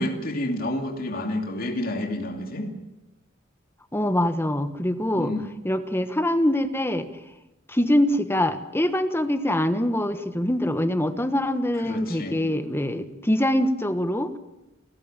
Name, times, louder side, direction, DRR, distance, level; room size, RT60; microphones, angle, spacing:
voice 1, 0.0-2.7 5.1-5.5 11.7-12.4, left 1 dB, 50° left, 2 dB, 2.7 m, -29 dB
voice 2, 3.9-5.3 5.6-7.1 7.7-14.3, left 1 dB, 10° left, 10 dB, 1.3 m, -24 dB
29.5 x 14.5 x 9.1 m, 1.0 s
head